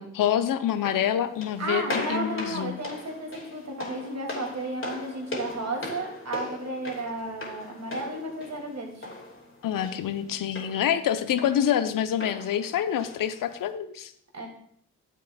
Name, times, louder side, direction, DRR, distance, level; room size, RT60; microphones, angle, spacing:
voice 1, 0.0-2.7 9.6-14.1, left 10 dB, 50° left, 11 dB, 0.8 m, -26 dB
sound 1, 0.7-13.7, left 2 dB, 30° left, 3.0 m, -39 dB
voice 2, 1.6-9.1 14.3-14.5, right 2 dB, 35° right, 1 dB, 2.6 m, -33 dB
13.0 x 7.5 x 2.3 m, 0.67 s
figure-of-eight pair, 40°, 44 cm